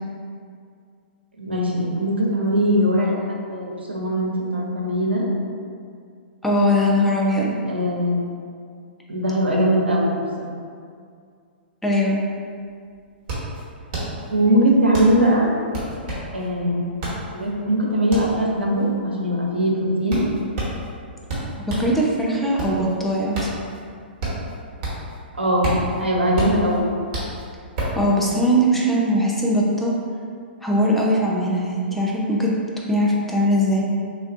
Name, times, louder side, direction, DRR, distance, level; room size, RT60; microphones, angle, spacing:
voice 1, 1.4-5.2 7.7-8.1 9.1-10.5 14.3-15.5 16.3-16.8 17.3-20.2 25.3-25.7 26.0-26.9, equal, 80° right, -3 dB, 0.6 m, -21 dB
voice 2, 6.4-7.5 11.8-12.2 21.7-23.5 28.0-30.0 30.6-32.5 32.9-33.8, equal, 5° left, -4 dB, 0.4 m, -20 dB
sound 1, 12.3-12.4 12.7-22.0 22.4-25.2 25.4-28.0, right 1 dB, 35° right, 1.0 m, -30 dB
3.4 x 2.3 x 2.4 m, 2.2 s
figure-of-eight pair, 115°, 6 cm